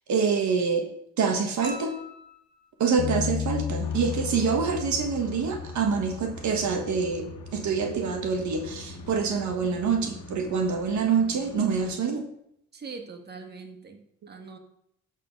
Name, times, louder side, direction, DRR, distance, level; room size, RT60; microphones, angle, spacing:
voice 1, 0.1-0.9 1.2-2.0 2.8-12.3, right 5 dB, 70° right, 4 dB, 1.4 m, -26 dB
sound 1, 1.6-2.9 5.7-5.8, left 1 dB, 15° right, 2.6 m, -44 dB
Bass guitar, 3.0-9.2, left 8 dB, 55° left, 0.6 m, -35 dB
sound 2, 3.8-12.0, left 1 dB, 75° left, 1.5 m, -44 dB
voice 2, 12.7-14.6, right 4 dB, 35° right, 4 dB, 1.5 m, -42 dB
12.5 x 4.5 x 5.3 m, 0.74 s
cardioid pair, 90°, 30 cm